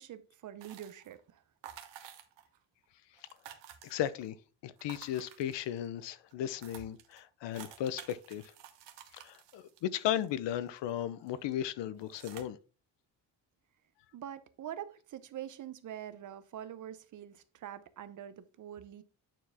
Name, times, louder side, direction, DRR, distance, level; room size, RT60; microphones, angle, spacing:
voice 1, 0.0-1.4 14.1-19.0, right 10 dB, 45° right, 0.6 m, -45 dB
sound 1, 0.6-1.2 1.6-2.6 2.8-2.9 3.1-4.3 4.8-5.9 6.3-6.4 6.6-10.9 11.3-11.5 12.0-12.4, right 10 dB, 75° right, 1.2 m, -52 dB
voice 2, 3.8-4.4 4.6-8.4 9.1-12.6, left 11 dB, 75° left, 0.7 m, -35 dB
9.0 x 4.7 x 3.5 m
cardioid pair, 180°, 43 cm